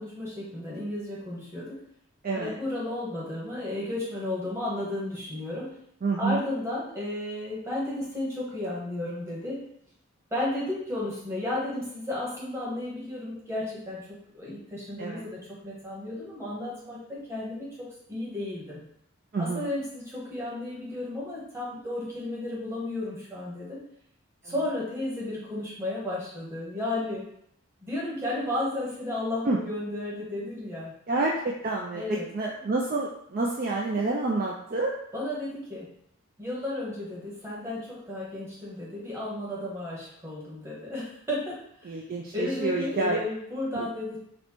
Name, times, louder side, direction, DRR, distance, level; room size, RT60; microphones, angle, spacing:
voice 1, 0.0-1.8 2.3-5.7 6.2-9.6 10.3-18.8 19.4-23.8 24.4-27.3 27.8-30.9 31.9-32.3 35.1-35.9 36.4-42.0 42.3-44.2, left 1 dB, 10° right, -7 dB, 1.2 m, -33 dB
voice 2, 6.0-6.4 15.0-15.2 19.3-19.7 29.4-29.6 31.1-34.9 41.8-43.2 43.7-43.9, right 3 dB, 40° right, -1 dB, 0.4 m, -28 dB
4.2 x 2.2 x 4.3 m, 0.72 s
head